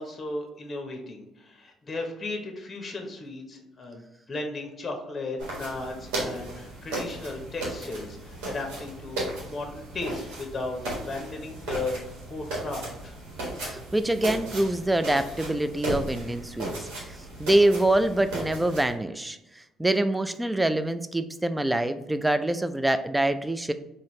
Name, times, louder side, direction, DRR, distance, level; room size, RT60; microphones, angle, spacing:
voice 1, 0.0-13.2, left 2 dB, 30° left, 2 dB, 0.9 m, -35 dB
sound 1, 5.4-18.9, right 2 dB, 80° right, 1.4 m, -36 dB
voice 2, 13.6-16.7 17.1-19.4 19.8-23.7, right 1 dB, 10° right, 11 dB, 0.4 m, -25 dB
3.9 x 2.6 x 3.1 m, 0.92 s
supercardioid pair, 65°, 0 cm